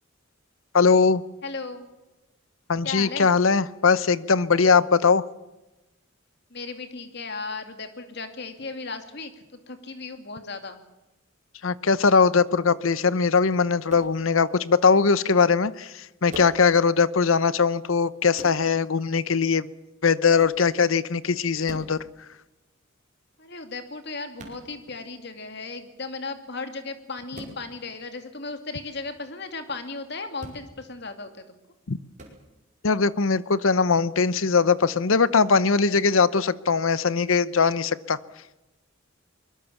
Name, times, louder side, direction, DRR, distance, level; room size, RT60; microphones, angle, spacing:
voice 1, 0.7-1.2 2.7-5.2 11.6-19.7 20.0-22.0 31.9-32.0 32.8-38.2, left 5 dB, 80° left, 17 dB, 0.8 m, -21 dB
voice 2, 1.4-1.9 2.8-3.3 6.5-9.3 9.7-10.8 23.4-31.4, left 3 dB, 55° left, 7 dB, 2.5 m, -36 dB
sound 1, 13.9-14.1 16.3-16.6 18.3-18.6 20.4-20.6 21.6-21.9 24.4-24.6 27.3-27.6 30.3-30.6 32.2-32.4, right 1 dB, 40° right, 5.2 m, -41 dB
23.5 x 21.5 x 7.2 m, 1.0 s
head